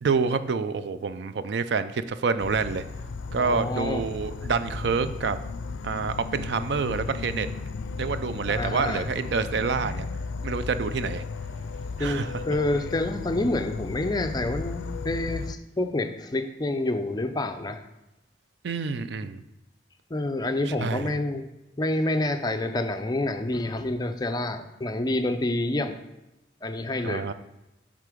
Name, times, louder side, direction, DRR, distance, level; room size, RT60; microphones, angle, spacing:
voice 1, 0.0-2.8 3.3-5.4 5.8-7.5 8.0-10.1 10.4-11.2 12.0-12.6 18.6-19.4 20.7-21.1 27.0-27.3, right 5 dB, 65° right, 12 dB, 0.4 m, -27 dB
Insect / Frog, 2.4-15.5, left 4 dB, 85° left, 0.4 m, -35 dB
voice 2, 3.4-4.5 8.5-9.1 12.0-17.8 20.1-21.5 21.8-26.0 26.6-27.3, left 2 dB, 20° left, 7 dB, 0.5 m, -28 dB
8.3 x 3.8 x 5.0 m, 0.96 s
head